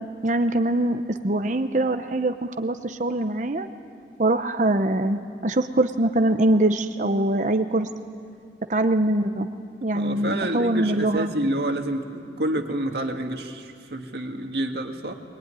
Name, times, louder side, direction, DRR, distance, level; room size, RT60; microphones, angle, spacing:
voice 1, 0.2-3.7 4.2-7.9 8.7-9.5 9.8-11.3, right 1 dB, 45° right, 7 dB, 0.8 m, -23 dB
voice 2, 9.9-15.1, right 1 dB, 65° right, 3 dB, 2.0 m, -28 dB
22.5 x 22.0 x 9.8 m, 2.3 s
head